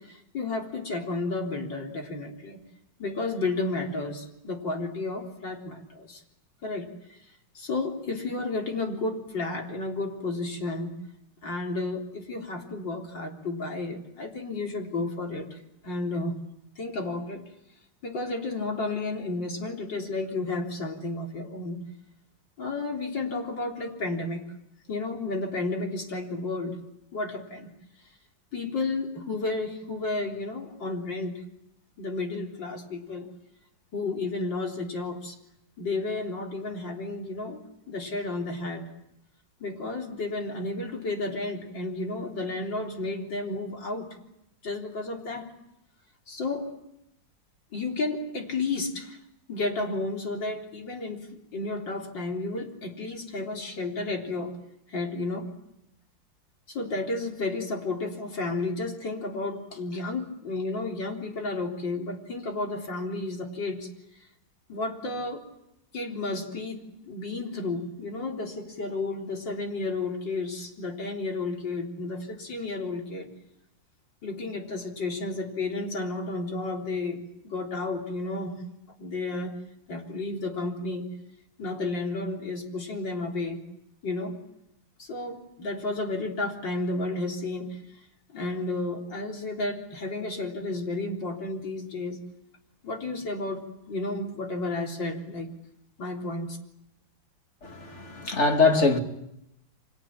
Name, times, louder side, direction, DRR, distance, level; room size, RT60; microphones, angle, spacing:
voice 1, 0.0-2.6 3.0-6.2 6.6-7.2 7.5-10.9 11.4-16.4 16.8-17.4 18.0-21.8 22.6-24.4 24.9-26.8 27.1-27.7 28.5-31.4 32.0-33.3 33.9-35.4 35.8-38.9 39.6-44.1 44.6-45.5 46.3-46.7 47.7-49.2 49.5-54.6 54.9-55.5 56.7-63.9 64.7-65.4 65.9-73.3 74.2-78.6 79.0-79.6 79.9-81.1 81.6-83.6 84.0-84.4 85.0-87.8 88.3-92.2 92.8-93.6 93.9-95.5 96.0-96.6, left 3 dB, 65° left, 4.4 m, -32 dB
voice 2, 97.6-99.0, left 3 dB, 35° left, 2.7 m, -23 dB
29.5 x 25.0 x 7.4 m
omnidirectional pair, 2.1 m